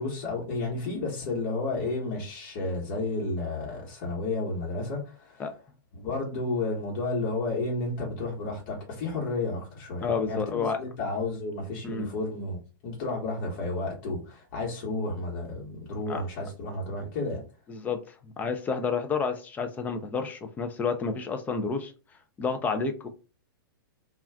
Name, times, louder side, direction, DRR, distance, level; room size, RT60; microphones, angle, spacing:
voice 1, 0.0-5.5 5.9-17.4, left 2 dB, 45° left, 1.2 m, -32 dB
voice 2, 10.0-10.8 11.8-12.1 16.1-16.2 17.7-21.9 22.4-23.1, left 5 dB, 15° left, 0.3 m, -30 dB
2.3 x 2.3 x 3.3 m
hypercardioid pair, 135°, 12 cm